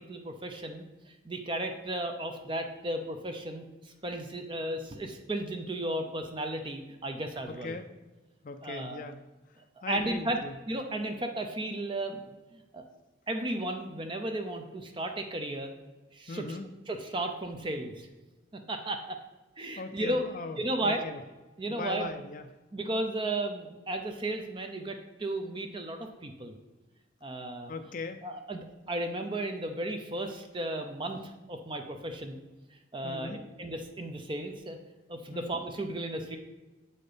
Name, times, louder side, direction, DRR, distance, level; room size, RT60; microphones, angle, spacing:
voice 1, 0.1-7.8 8.6-9.0 9.9-10.4 10.7-12.2 12.5-12.8 13.3-15.7 16.1-16.6 16.9-18.1 18.7-19.2 19.6-20.2 20.6-21.0 21.6-22.1 22.7-26.5 27.2-27.7 28.2-32.4 32.9-34.8 35.1-36.4, right 1 dB, 25° right, 5 dB, 0.6 m, -34 dB
voice 2, 7.5-7.9 8.4-9.2 9.8-10.5 16.3-16.7 19.8-21.2 21.7-22.5 27.7-28.2 33.0-33.4 35.3-35.5, left 3 dB, 45° left, 8 dB, 0.4 m, -39 dB
7.8 x 4.2 x 5.0 m, 1.1 s
head